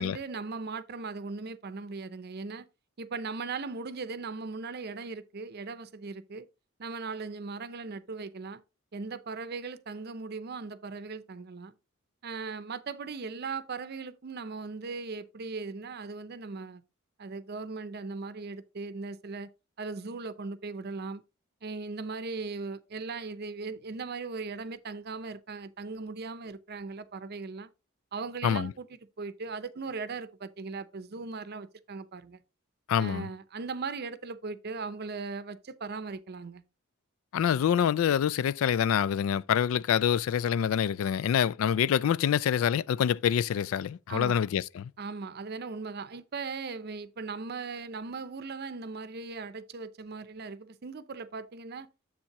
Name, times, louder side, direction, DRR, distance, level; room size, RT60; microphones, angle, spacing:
voice 1, 0.0-2.7 3.0-6.5 6.8-8.6 8.9-11.7 12.2-16.8 17.2-19.5 19.8-21.2 21.6-27.7 28.1-32.4 33.0-36.6 44.1-44.4 45.0-51.9, right 4 dB, 50° right, 0.6 m, -38 dB
voice 2, 32.9-33.3 37.3-44.9, left 8 dB, 70° left, 0.3 m, -26 dB
7.3 x 7.2 x 3.0 m
head